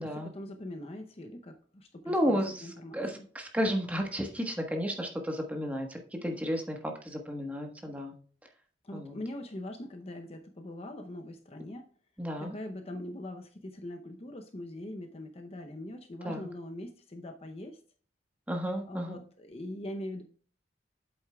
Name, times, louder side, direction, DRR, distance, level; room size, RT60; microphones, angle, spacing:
voice 1, 0.0-3.2 8.8-11.9 12.4-17.8 18.9-20.2, left 1 dB, 35° left, 5 dB, 0.7 m, -42 dB
voice 2, 2.0-8.1 8.9-9.2 12.2-12.6 16.2-16.5 18.5-19.2, equal, 10° right, 2 dB, 1.3 m, -32 dB
8.1 x 7.9 x 2.3 m, 0.43 s
head